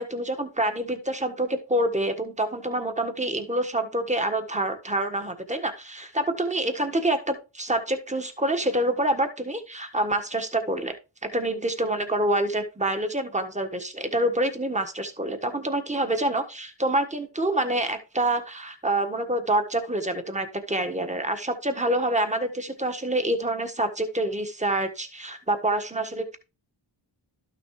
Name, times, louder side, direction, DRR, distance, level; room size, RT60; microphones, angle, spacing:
voice 1, 0.0-10.9 11.2-26.4, right 1 dB, 15° right, 7 dB, 1.4 m, -27 dB
12.0 x 6.3 x 3.1 m, 0.30 s
cardioid pair, 60°, 46 cm